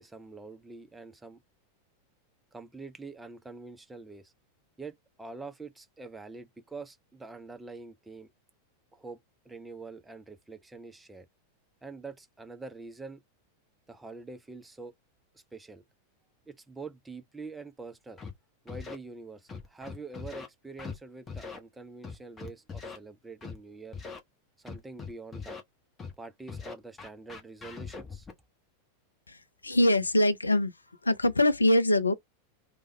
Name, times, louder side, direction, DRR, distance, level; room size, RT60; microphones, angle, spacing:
voice 1, 0.0-1.4 2.5-4.3 4.8-8.3 8.9-11.3 11.8-13.2 13.9-14.9 15.3-15.8 16.5-18.2 18.6-24.0 24.6-25.6 26.2-28.3, right 3 dB, 10° right, 0.4 m, -45 dB
Scratching (performance technique), 18.2-18.3 18.7-18.9 19.5-20.5 20.8-21.0 21.3-21.6 22.0-23.0 23.4-23.6 23.9-24.2 24.7-25.6 26.0-26.1 26.5-28.3, left 5 dB, 20° left, 0.8 m, -41 dB
voice 2, 29.3-30.7 31.0-32.1, left 1 dB, 80° left, 0.3 m, -24 dB
3.3 x 2.0 x 3.0 m
figure-of-eight pair, 90°, 0 cm